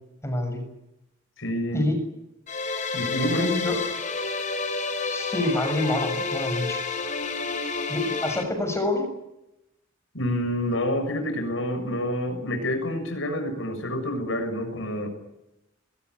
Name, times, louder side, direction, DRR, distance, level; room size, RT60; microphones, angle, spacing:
voice 1, 0.2-0.6 1.7-2.0 3.4-3.8 5.0-6.8 7.9-9.1, left 1 dB, 15° left, 6 dB, 6.6 m, -27 dB
voice 2, 1.4-1.9 2.9-3.5 10.1-15.1, equal, 70° left, 5 dB, 6.9 m, -28 dB
sound 1, 2.5-8.4, left 4 dB, 40° left, 3.7 m, -29 dB
21.0 x 19.5 x 9.8 m, 0.88 s
head